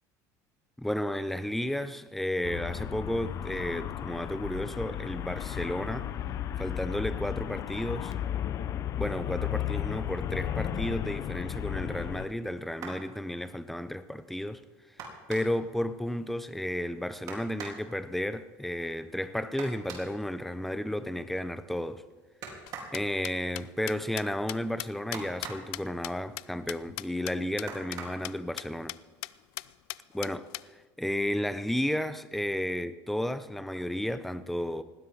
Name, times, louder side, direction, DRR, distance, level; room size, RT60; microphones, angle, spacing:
voice 1, 0.8-6.1 6.6-8.2 8.9-14.6 15.3-22.0 22.9-28.9 30.1-34.8, left 1 dB, ahead, 0.7 m, -33 dB
Traffic noise roadway noise, 2.4-12.3, left 10 dB, 40° left, 0.7 m, -34 dB
sound 1, 12.7-13.1 15.0-15.7 17.3-17.9 19.6-20.1 22.4-23.0 25.1-25.8 27.7-28.3 29.4-29.5 29.9-30.1, right 4 dB, 50° right, 3.8 m, -42 dB
sound 2, 22.7-27.3 27.6-27.7 27.9-28.0 28.2-28.3 28.6-29.0 29.2-29.3 29.6-30.6, left 22 dB, 80° left, 0.4 m, -38 dB
19.5 x 15.5 x 3.9 m
cardioid pair, 140°, 8 cm